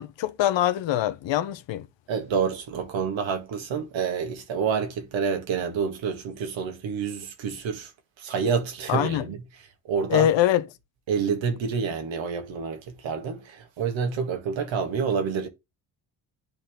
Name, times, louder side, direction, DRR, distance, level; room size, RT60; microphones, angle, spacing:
voice 1, 0.0-1.8 8.9-9.2 10.1-10.6, left 12 dB, 65° left, 1.0 m, -23 dB
voice 2, 2.1-7.9 8.2-9.4 9.9-10.3 11.1-15.5, right 6 dB, 70° right, 2.1 m, -28 dB
10.0 x 4.4 x 3.7 m
supercardioid pair, 55°, 47 cm